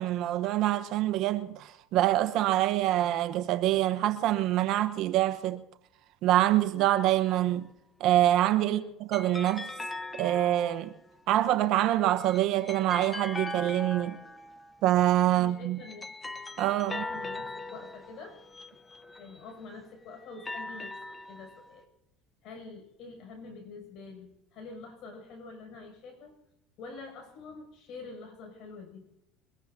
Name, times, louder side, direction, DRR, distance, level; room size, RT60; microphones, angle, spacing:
voice 1, 0.0-5.6 6.2-7.7 8.0-8.8 9.1-9.7 10.2-10.9 11.3-14.2 14.8-15.8 16.6-17.0, right 13 dB, 60° right, 1.1 m, -25 dB
sound 1, 6.8-7.5 9.1-11.1 12.0-14.8 15.5-19.6 20.2-21.8, left 2 dB, 15° left, 1.0 m, -41 dB
voice 2, 8.6-8.9 15.3-16.1 16.9-18.4 19.2-21.0 21.3-21.9 22.4-26.4 26.8-29.1, left 3 dB, 60° left, 7.2 m, -46 dB
23.0 x 21.0 x 2.8 m
supercardioid pair, 100°, 0 cm